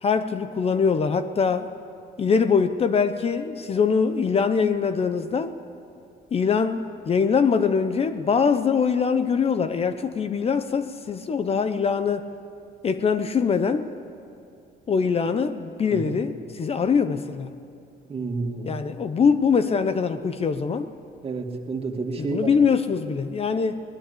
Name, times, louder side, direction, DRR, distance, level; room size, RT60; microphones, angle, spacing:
voice 1, 0.0-1.7 2.2-5.5 6.3-12.3 12.8-13.9 14.9-17.5 18.6-20.9 22.2-23.8, left 6 dB, 35° left, 10 dB, 0.9 m, -23 dB
voice 2, 18.1-18.8 21.2-22.5, right 3 dB, 35° right, 3 dB, 2.4 m, -30 dB
22.5 x 19.5 x 8.5 m, 2.6 s
cardioid pair, 110°, 17 cm